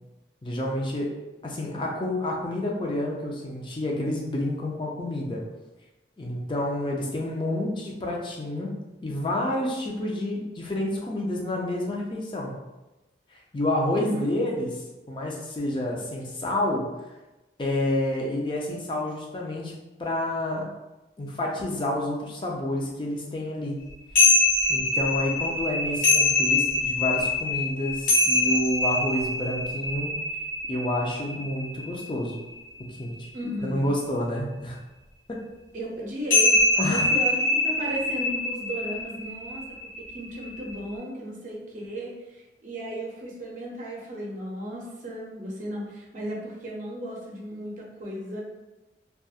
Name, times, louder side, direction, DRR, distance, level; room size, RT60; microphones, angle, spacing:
voice 1, 0.4-1.1 1.4-5.4 6.2-8.7 9.0-12.5 13.5-16.9 17.6-19.7 20.0-20.7 21.2-23.7 24.7-30.1 30.7-32.3 32.9-33.3 33.6-34.8 36.8-37.1, left 1 dB, 30° left, -2 dB, 0.4 m, -29 dB
voice 2, 13.9-14.3 33.3-34.0 35.7-36.6 36.8-37.4 37.6-39.6 40.0-48.4, equal, 45° right, -3 dB, 0.6 m, -35 dB
sound 1, 24.2-32.8 36.3-40.9, left 2 dB, 50° left, 0.9 m, -24 dB
2.9 x 2.3 x 2.3 m, 1.1 s
head